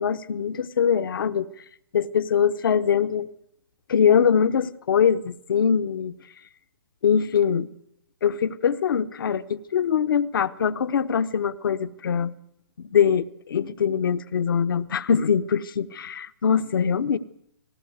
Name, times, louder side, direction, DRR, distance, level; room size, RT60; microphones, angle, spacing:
voice 1, 0.0-1.5 1.9-3.3 3.9-6.1 7.0-7.7 8.2-12.3 12.8-17.2, left 7 dB, 65° left, 11 dB, 1.0 m, -23 dB
19.5 x 17.5 x 8.0 m, 0.76 s
hypercardioid pair, 155°, 12 cm